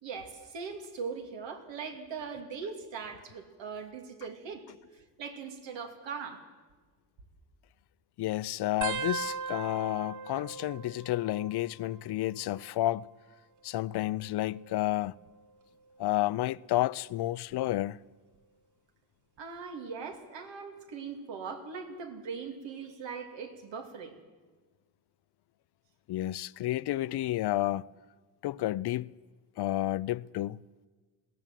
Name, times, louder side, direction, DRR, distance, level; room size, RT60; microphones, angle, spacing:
voice 1, 0.0-4.6 4.9-6.4 19.4-24.2, right 5 dB, 85° right, 2.8 m, -40 dB
voice 2, 8.2-13.1 13.6-15.2 16.0-18.0 26.1-27.8 28.4-29.1 29.6-30.6, left 15 dB, 65° left, 0.6 m, -31 dB
sound 1, 8.8-12.0 12.3-12.9 13.9-15.3 16.0-16.3 17.5-17.9 19.4-19.5, right 6 dB, 45° right, 1.0 m, -40 dB
22.0 x 16.5 x 7.5 m
cardioid pair, 105°, 43 cm